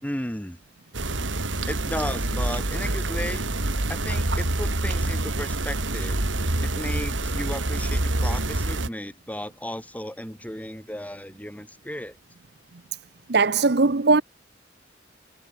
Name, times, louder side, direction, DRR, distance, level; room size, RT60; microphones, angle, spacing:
voice 1, 0.0-0.6 1.7-3.5 3.9-6.2 6.6-12.2, left 1 dB, 10° left, 5.7 m, -34 dB
sound 1, 0.9-8.9, right 2 dB, 85° right, 2.9 m, -26 dB
voice 2, 13.3-14.2, right 4 dB, 60° right, 0.9 m, -19 dB
head